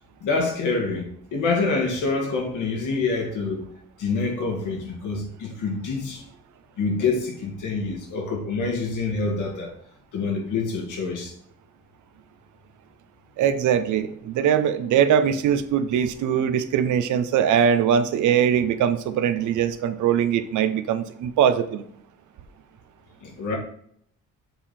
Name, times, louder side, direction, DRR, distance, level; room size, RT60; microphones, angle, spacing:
voice 1, 0.2-3.7 4.0-6.2 6.8-9.7 10.1-11.3 23.2-23.6, left 4 dB, 80° left, 2.0 m, -26 dB
voice 2, 13.4-21.8, right 8 dB, 75° right, 0.7 m, -21 dB
7.0 x 3.8 x 4.3 m
cardioid pair, 90°, 30 cm